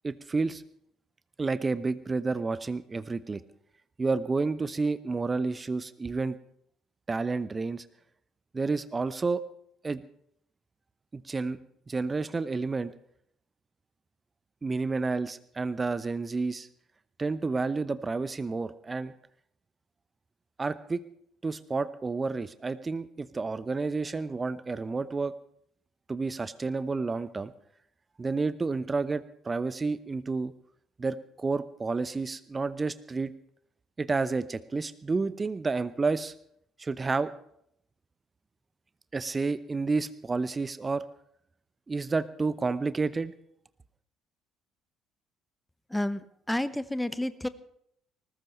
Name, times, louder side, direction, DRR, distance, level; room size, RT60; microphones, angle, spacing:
voice 1, 0.0-0.6 1.4-3.4 4.0-6.4 7.1-7.9 8.5-9.4 9.8-10.0 11.1-11.6 11.9-12.9 14.6-16.7 17.2-19.1 20.6-21.0 21.4-25.3 26.1-27.5 28.2-30.5 31.0-33.3 34.0-36.3 36.8-37.3 39.1-41.0 41.9-43.3, right 4 dB, 25° right, 15 dB, 0.8 m, -30 dB
voice 2, 45.9-47.5, left 1 dB, 5° left, 14 dB, 0.9 m, -30 dB
20.0 x 19.0 x 3.2 m, 0.70 s
figure-of-eight pair, 50°, 0 cm